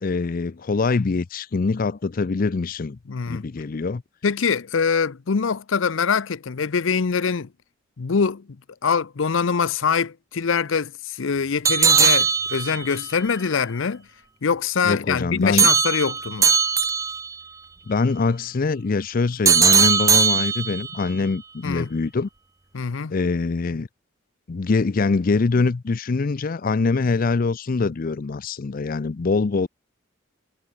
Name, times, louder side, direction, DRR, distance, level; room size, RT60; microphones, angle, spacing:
voice 1, 0.0-3.0 3.3-4.0 14.8-15.7 17.9-22.3 23.1-23.9 24.5-29.7, left 4 dB, 45° left, 0.5 m, -23 dB
voice 2, 3.1-3.4 4.2-7.5 8.0-8.5 8.8-14.1 14.4-16.5 21.6-21.9 22.7-23.1, left 5 dB, 90° left, 0.6 m, -24 dB
sound 1, 11.6-13.0 15.6-17.3 19.4-21.0, right 6 dB, 15° right, 0.5 m, -19 dB
head